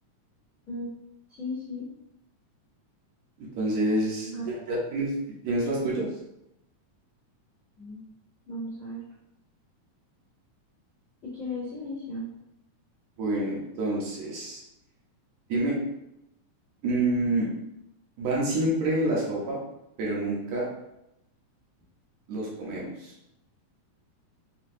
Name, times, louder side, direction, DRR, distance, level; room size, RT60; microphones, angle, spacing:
voice 1, 1.3-1.9 4.2-4.8 7.8-8.0 8.5-9.0 11.2-12.3, left 1 dB, 45° left, -11 dB, 1.0 m, -36 dB
voice 2, 3.4-4.3 4.7-5.1 5.4-6.1 13.2-14.6 15.5-15.8 16.8-17.5 18.2-19.6 20.0-20.7 22.3-23.1, right 1 dB, 70° right, -4 dB, 2.0 m, -27 dB
5.8 x 2.2 x 2.6 m, 0.84 s
omnidirectional pair, 3.4 m